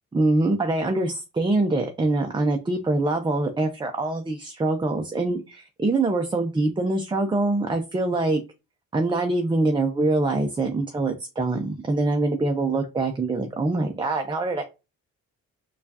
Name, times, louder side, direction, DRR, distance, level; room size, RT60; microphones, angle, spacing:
voice 1, 0.1-8.4 8.9-14.6, right 2 dB, 15° right, 4 dB, 0.5 m, -24 dB
4.2 x 2.4 x 2.7 m, 0.28 s
cardioid pair, 90°, 30 cm